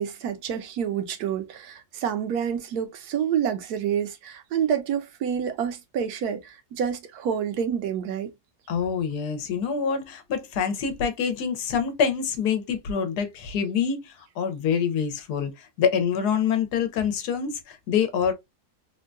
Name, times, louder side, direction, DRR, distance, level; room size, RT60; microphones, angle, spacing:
voice 1, 0.0-8.3, right 8 dB, 75° right, 1.2 m, -28 dB
voice 2, 8.7-18.3, left 7 dB, 80° left, 1.2 m, -26 dB
3.6 x 2.2 x 2.5 m
omnidirectional pair, 1.7 m